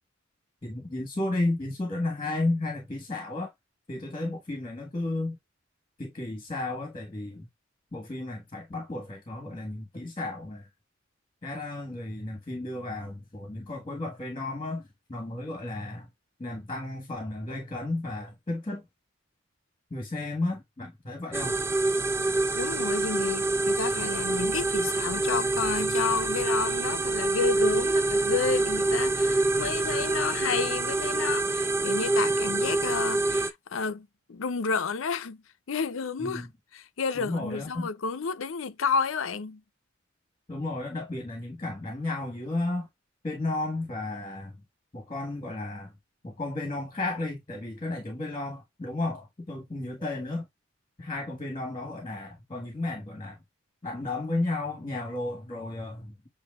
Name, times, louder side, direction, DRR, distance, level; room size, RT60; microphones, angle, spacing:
voice 1, 0.6-3.5 3.9-5.4 6.0-7.5 7.9-10.6 11.4-14.8 15.1-16.1 16.4-18.8 19.9-21.5 36.2-36.5 37.2-37.9 40.5-42.9 43.2-44.5 44.9-45.9 46.2-50.4 51.0-53.4 53.8-56.1, left 2 dB, 25° left, 1.4 m, -33 dB
sound 1, 21.3-33.5, right 2 dB, 15° right, 0.4 m, -26 dB
voice 2, 22.5-35.4 35.7-36.5 36.7-39.6, left 5 dB, 80° left, 0.6 m, -31 dB
7.9 x 2.7 x 2.3 m
head